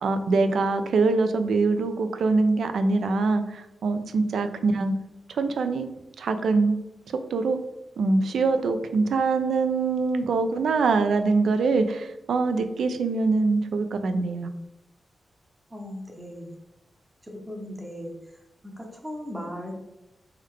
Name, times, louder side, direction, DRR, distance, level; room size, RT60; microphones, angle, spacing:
voice 1, 0.0-4.9 5.3-5.9 6.2-6.7 7.3-7.6 8.0-14.5, right 3 dB, 85° right, 9 dB, 0.4 m, -23 dB
voice 2, 15.7-16.6 17.3-18.1 18.6-19.7, equal, 15° right, 0 dB, 0.6 m, -37 dB
3.3 x 3.2 x 3.6 m, 0.96 s
wide cardioid pair, 150°, 0 cm